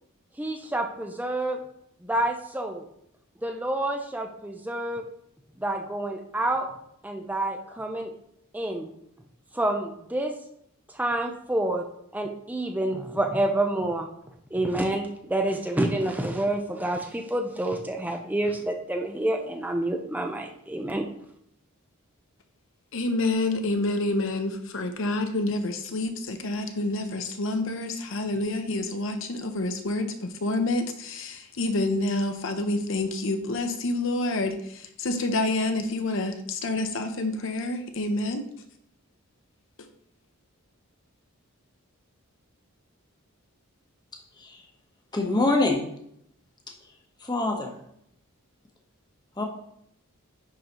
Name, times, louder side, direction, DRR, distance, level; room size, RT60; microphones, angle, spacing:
voice 1, 0.4-1.6 2.0-2.8 3.4-5.0 5.6-6.7 7.0-8.1 8.5-8.9 9.5-10.3 10.9-11.8 12.1-14.1 14.5-21.0, right 1 dB, 10° right, 3 dB, 0.5 m, -28 dB
voice 2, 22.9-38.5 39.8-39.9, left 2 dB, 60° left, 7 dB, 0.7 m, -28 dB
voice 3, 45.1-45.8 47.2-47.7 49.4-49.5, left 2 dB, 20° left, 2 dB, 1.0 m, -24 dB
10.5 x 4.0 x 3.0 m, 0.72 s
head